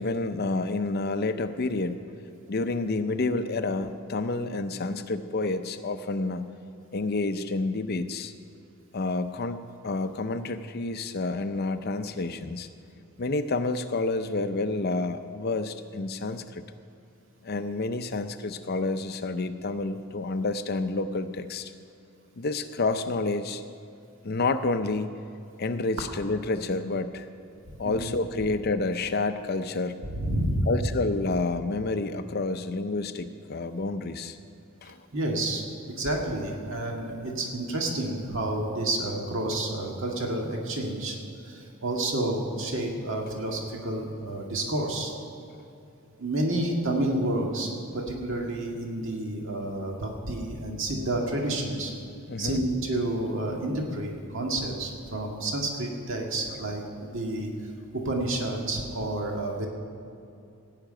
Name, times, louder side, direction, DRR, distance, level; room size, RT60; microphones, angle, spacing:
voice 1, 0.0-2.0 2.5-6.5 6.9-8.3 8.9-12.7 13.2-16.6 17.4-21.7 22.4-23.6 24.2-25.2 25.6-27.3 27.8-30.0 30.7-34.4 34.8-35.0 52.3-52.6, left 3 dB, 45° left, 9 dB, 0.6 m, -29 dB
voice 2, 30.0-30.7 35.1-45.1 46.2-51.9 52.4-57.5 57.9-59.7, right 1 dB, 60° right, 0 dB, 1.9 m, -30 dB
16.5 x 5.9 x 8.8 m, 2.6 s
head